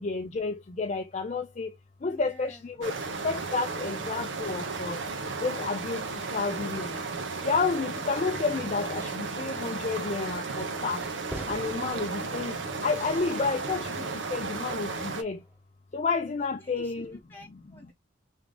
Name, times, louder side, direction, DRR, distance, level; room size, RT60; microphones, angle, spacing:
voice 1, 0.0-1.7 2.0-2.9 3.2-5.0 5.4-6.0 6.3-7.0 7.4-11.0 11.5-12.6 12.8-15.4 15.9-17.1, left 4 dB, 35° left, 0.4 m, -30 dB
voice 2, 2.1-2.7 16.4-17.9, left 2 dB, 10° left, 1.8 m, -50 dB
sound 1, 2.8-15.2, right 4 dB, 75° right, 1.2 m, -34 dB
Fireworks, 10.3-15.5, right 1 dB, 10° right, 1.8 m, -46 dB
3.7 x 3.5 x 3.4 m
head